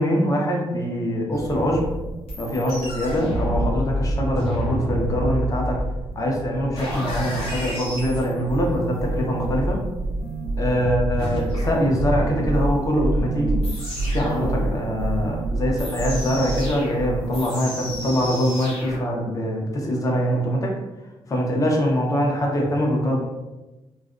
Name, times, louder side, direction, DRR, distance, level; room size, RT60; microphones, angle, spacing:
voice 1, 0.0-1.9 2.4-5.8 6.1-9.9 10.6-13.6 14.1-20.8 21.3-23.2, equal, 35° left, -1 dB, 0.6 m, -23 dB
sound 1, 1.3-19.0, equal, 75° left, 1.0 m, -30 dB
sound 2, 4.4-4.7 5.0-5.7 6.0-6.7 7.0-17.2, right 2 dB, 65° right, 0.5 m, -28 dB
2.4 x 2.1 x 2.4 m, 1.1 s
cardioid pair, 90°, 10 cm